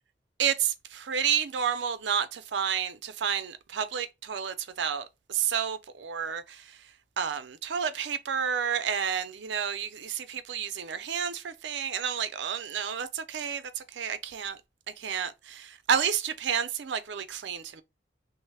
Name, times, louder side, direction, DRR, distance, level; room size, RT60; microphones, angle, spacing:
voice 1, 0.4-6.6 7.2-14.6 15.0-17.8, right 8 dB, 85° right, 0.4 m, -30 dB
3.1 x 2.0 x 3.2 m
head